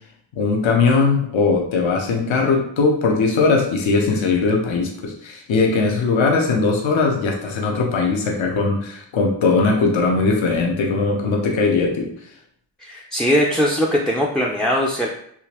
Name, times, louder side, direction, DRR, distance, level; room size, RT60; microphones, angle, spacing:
voice 1, 0.3-12.1, left 4 dB, 75° left, 1 dB, 0.8 m, -19 dB
voice 2, 12.8-15.1, equal, ahead, -2 dB, 0.3 m, -20 dB
3.7 x 2.5 x 2.9 m, 0.67 s
cardioid pair, 75°, 47 cm